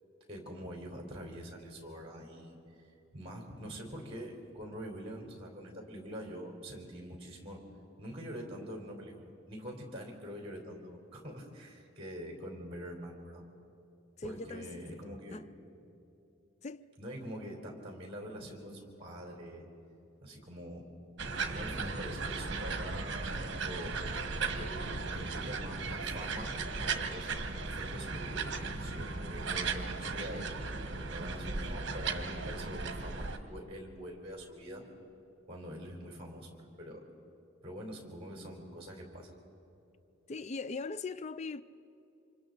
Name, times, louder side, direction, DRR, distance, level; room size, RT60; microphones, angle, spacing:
voice 1, 0.3-7.6 8.0-13.4 14.2-15.5 17.0-19.6 20.2-20.9 21.4-23.1 23.5-23.9 24.6-30.5 31.1-34.8 35.5-37.0 37.6-39.3, equal, 30° right, 3.9 m, -45 dB
voice 2, 14.2-15.0 15.3-15.4 16.6-16.9 40.3-41.6, left 3 dB, 35° left, 0.4 m, -40 dB
sound 1, 21.2-33.4, right 4 dB, 60° right, 1.3 m, -36 dB
28.5 x 26.0 x 4.0 m
head